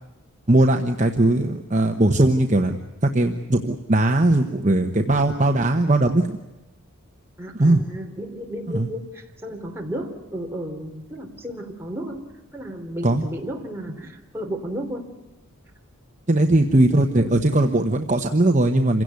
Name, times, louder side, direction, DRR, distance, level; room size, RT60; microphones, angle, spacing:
voice 1, 0.5-6.4 7.5-7.8 8.7-8.9 13.0-13.2 16.3-19.0, right 1 dB, 35° right, 4 dB, 1.1 m, -19 dB
voice 2, 7.4-12.2 12.5-15.0 17.2-17.4, equal, 10° right, 0 dB, 3.2 m, -33 dB
27.5 x 17.0 x 9.6 m, 1.1 s
head